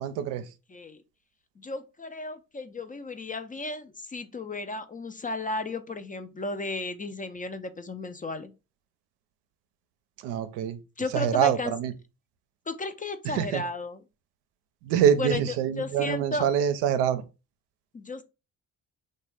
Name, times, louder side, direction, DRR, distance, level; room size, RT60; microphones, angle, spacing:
voice 1, 0.0-0.4 10.2-10.8 11.1-11.9 13.2-13.6 14.8-17.2, right 9 dB, 80° right, 0.5 m, -25 dB
voice 2, 0.7-1.0 1.6-8.5 11.0-11.7 12.7-14.0 15.2-16.4 17.9-18.2, left 2 dB, 20° left, 0.4 m, -34 dB
2.9 x 2.2 x 3.2 m
hypercardioid pair, 50°, 40 cm